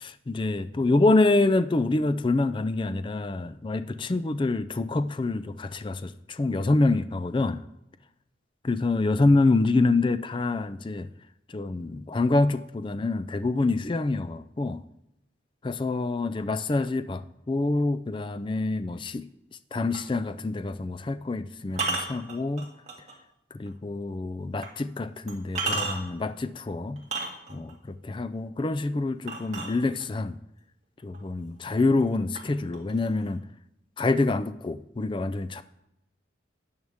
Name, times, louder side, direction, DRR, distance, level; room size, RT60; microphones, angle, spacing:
voice 1, 0.0-7.6 8.6-11.1 11.5-14.8 15.6-19.3 19.7-22.7 23.5-27.0 27.5-30.4 31.0-33.4 34.0-35.6, left 2 dB, 25° left, 0.3 m, -26 dB
sound 1, 19.9-20.1 21.7-23.1 23.7-23.8 24.6-24.7 25.3-26.2 27.0-27.7 29.3-30.2 31.1-31.2 31.7-32.1 32.3-33.3, right 3 dB, 35° right, 2.0 m, -32 dB
13.0 x 8.8 x 3.5 m
head